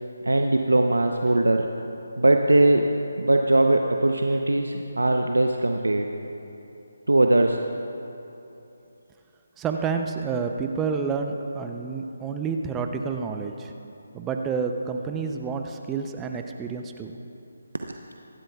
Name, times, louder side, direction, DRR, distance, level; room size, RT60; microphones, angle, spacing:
voice 1, 0.3-1.7 2.2-2.9 3.2-6.1 7.1-7.6, right 2 dB, 85° right, 4 dB, 0.7 m, -20 dB
voice 2, 9.6-13.7 14.1-17.1, right 5 dB, 10° right, 4 dB, 0.6 m, -29 dB
25.5 x 11.5 x 2.3 m, 2.9 s
figure-of-eight pair, 155°, 0 cm